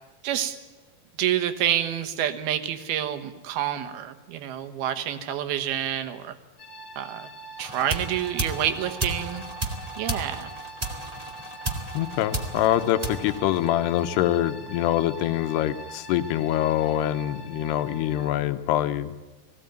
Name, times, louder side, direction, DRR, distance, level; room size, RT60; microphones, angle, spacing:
voice 1, 0.2-0.6 1.2-6.3 7.0-7.3 7.6-9.4 10.0-10.5, right 10 dB, 75° right, 8 dB, 3.1 m, -28 dB
sound 1, 6.6-18.3, right 3 dB, 35° left, 2.1 m, -43 dB
sound 2, 7.6-14.1, right 2 dB, 55° right, 0.4 m, -33 dB
voice 2, 11.9-19.1, left 12 dB, 85° left, 10 dB, 3.0 m, -25 dB
19.5 x 16.5 x 9.1 m, 1.2 s
omnidirectional pair, 4.7 m